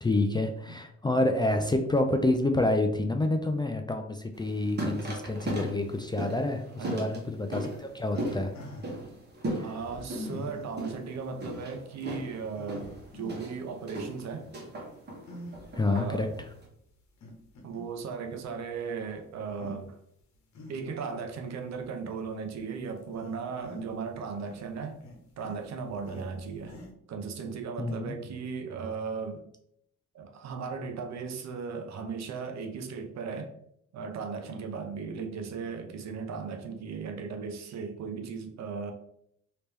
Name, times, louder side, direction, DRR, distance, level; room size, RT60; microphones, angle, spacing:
voice 1, 0.0-8.5 9.6-9.7 15.7-16.3 27.8-28.2, left 2 dB, 15° left, 5 dB, 0.3 m, -28 dB
sound 1, 4.3-16.6, right 1 dB, 35° right, 1.3 m, -38 dB
voice 2, 6.8-7.2 9.6-14.5 15.8-16.3 17.6-20.0 20.7-25.0 25.4-26.8 27.1-29.5 30.1-33.6 33.9-38.9, right 5 dB, 65° right, 5 dB, 0.7 m, -37 dB
sound 2, 7.6-9.0 9.8-10.7 11.4-11.5 12.0-12.1 12.5-13.5 14.0-14.3 15.2-15.9 16.4-16.5 17.2-18.0 18.4-18.5 19.5-19.8 20.2-21.1 21.7-21.8 22.4-22.6 23.0-24.1 24.4-26.9, left 1 dB, 65° left, 1.0 m, -45 dB
3.2 x 2.9 x 3.3 m, 0.72 s
cardioid pair, 90°, 30 cm